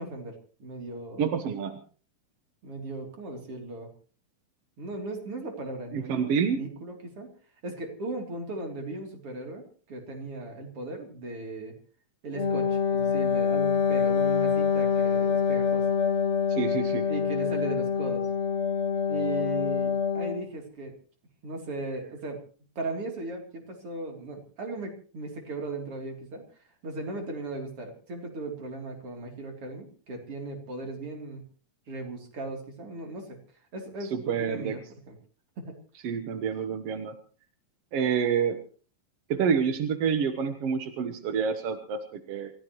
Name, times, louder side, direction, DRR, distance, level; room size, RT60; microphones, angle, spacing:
voice 1, 0.0-1.4 2.6-3.9 4.8-7.3 7.6-11.8 12.2-15.9 17.1-18.3 19.1-20.9 21.4-22.4 22.8-26.4 26.8-31.4 31.9-33.4 33.7-34.8 35.1-35.2 35.6-35.8, right 2 dB, 40° right, 2 dB, 4.0 m, -37 dB
voice 2, 1.2-1.8 5.9-6.6 16.5-17.0 34.1-34.8 36.0-37.1 37.9-38.6 39.3-42.5, right 7 dB, 60° right, 7 dB, 1.7 m, -28 dB
Wind instrument woodwind instrument, 12.3-20.5, left 6 dB, 25° left, 1.7 m, -26 dB
28.5 x 15.0 x 3.1 m, 0.40 s
omnidirectional pair, 4.1 m